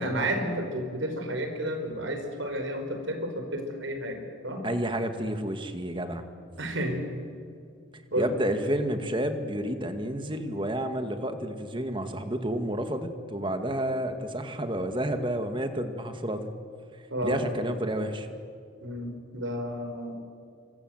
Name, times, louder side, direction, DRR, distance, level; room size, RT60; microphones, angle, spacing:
voice 1, 0.0-4.2 4.4-4.6 6.6-7.0 8.1-8.3 17.1-17.4 18.8-20.2, equal, 75° right, 5 dB, 5.3 m, -31 dB
voice 2, 4.6-6.2 8.2-16.5 17.2-18.3, right 1 dB, 25° right, 7 dB, 2.0 m, -30 dB
28.0 x 25.0 x 8.0 m, 2.3 s
head